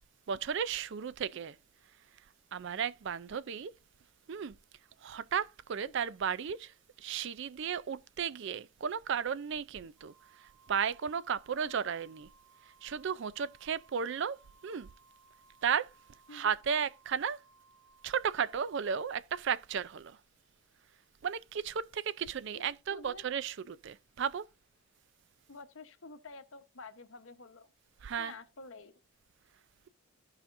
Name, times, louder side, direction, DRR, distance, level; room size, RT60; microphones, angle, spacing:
voice 1, 0.3-1.6 2.5-3.7 4.3-4.5 5.0-12.3 12.8-14.9 15.6-15.9 16.3-17.4 18.0-20.2 21.2-24.5 28.0-28.4, right 7 dB, 55° right, 0.4 m, -34 dB
Wind instrument woodwind instrument, 10.0-18.9, right 4 dB, ahead, 2.1 m, -64 dB
voice 2, 22.9-23.2 25.5-27.7 28.2-28.9, left 3 dB, 60° left, 1.0 m, -49 dB
14.5 x 5.0 x 2.5 m
head